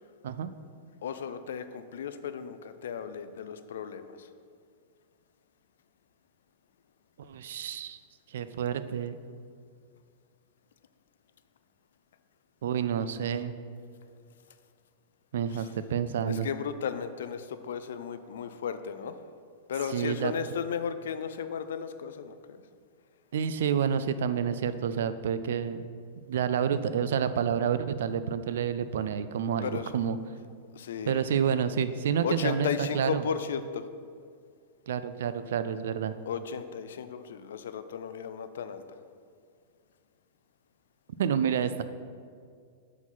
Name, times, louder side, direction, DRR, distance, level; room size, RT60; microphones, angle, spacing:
voice 1, 1.0-4.3 15.5-15.7 16.3-19.2 19.7-22.6 29.6-30.0 30.7-31.3 32.2-33.9 36.3-38.8, left 7 dB, 85° left, 11 dB, 0.4 m, -35 dB
voice 2, 7.2-8.0 8.3-9.2 12.6-13.5 15.3-16.5 19.9-20.3 23.3-25.8 26.3-30.2 31.1-33.2 34.9-36.1 41.2-41.8, right 8 dB, 80° right, 12 dB, 0.3 m, -29 dB
4.9 x 4.0 x 5.6 m, 2.2 s
supercardioid pair, 145°, 0 cm